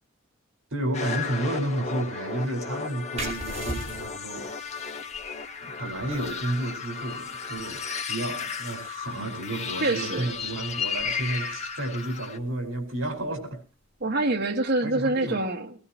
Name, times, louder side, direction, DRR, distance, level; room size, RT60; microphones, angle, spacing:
voice 1, 0.7-4.9 5.6-7.8 8.1-13.6 14.8-15.4, right 1 dB, 75° right, 5.1 m, -31 dB
sound 1, 0.9-12.4, left 5 dB, 35° left, 1.6 m, -34 dB
sound 2, 3.1-14.4, right 2 dB, 35° right, 5.2 m, -44 dB
voice 2, 9.8-10.3 14.0-15.7, right 2 dB, 55° right, 1.8 m, -26 dB
20.5 x 19.0 x 3.0 m
head